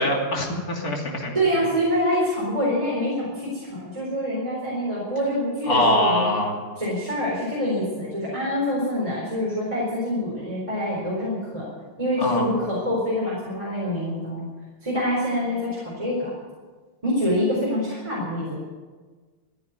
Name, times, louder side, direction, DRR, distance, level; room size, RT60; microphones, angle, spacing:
voice 1, 0.0-1.3 5.7-6.5 12.2-12.5, left 1 dB, 45° left, -1 dB, 3.2 m, -23 dB
voice 2, 1.3-6.4 6.8-11.7 12.0-14.5 14.8-16.3 17.0-18.6, equal, 15° right, -6 dB, 4.2 m, -25 dB
14.0 x 10.0 x 9.4 m, 1.4 s
omnidirectional pair, 2.4 m